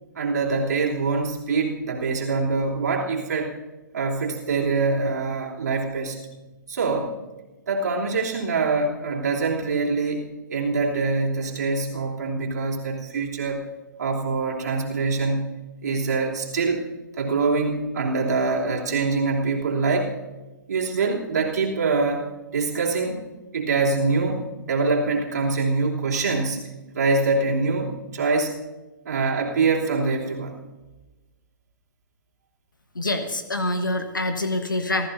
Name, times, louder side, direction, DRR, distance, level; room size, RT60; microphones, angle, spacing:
voice 1, 0.1-3.5 3.9-6.2 6.7-7.1 7.7-13.6 14.0-15.5 15.8-16.8 17.2-20.1 20.7-22.2 22.5-23.2 23.5-26.6 26.9-28.6 29.0-30.6, right 3 dB, 55° right, -2 dB, 3.2 m, -24 dB
voice 2, 32.9-35.1, left 2 dB, 75° left, 8 dB, 1.3 m, -25 dB
27.5 x 15.0 x 2.8 m, 1.1 s
figure-of-eight pair, 120°, 11 cm